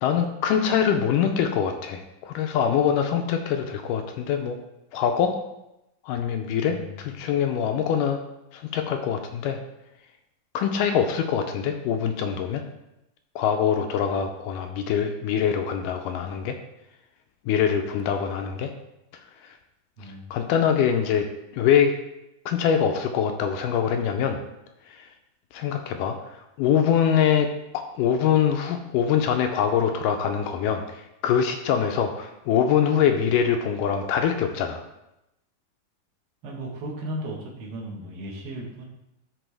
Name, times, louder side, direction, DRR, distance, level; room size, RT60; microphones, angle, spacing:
voice 1, 0.0-4.6 4.9-5.3 6.1-8.2 8.5-9.6 10.5-12.6 13.4-16.5 17.5-18.7 20.3-21.3 21.5-22.0 22.5-24.4 25.5-26.2 26.6-27.5 28.0-34.8, left 8 dB, 80° left, 5 dB, 2.0 m, -23 dB
voice 2, 36.4-38.9, right 1 dB, 50° right, -2 dB, 1.3 m, -35 dB
12.0 x 4.4 x 3.4 m, 0.89 s
omnidirectional pair, 4.0 m